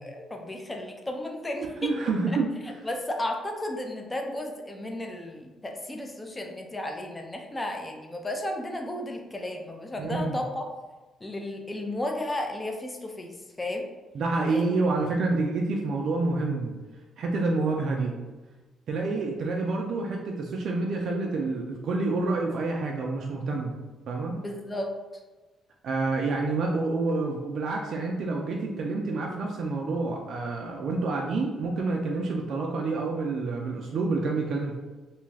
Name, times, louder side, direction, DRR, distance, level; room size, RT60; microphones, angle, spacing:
voice 1, 0.0-1.9 2.8-10.7 11.2-13.9 14.5-14.7 24.4-24.9, left 1 dB, 20° left, 2 dB, 0.4 m, -34 dB
voice 2, 1.8-2.5 10.0-10.4 14.1-16.7 17.2-18.1 18.9-23.7 24.1-24.3 25.8-34.8, right 3 dB, 65° right, 0 dB, 0.4 m, -28 dB
2.6 x 2.3 x 3.2 m, 1.2 s
cardioid pair, 90°, 0 cm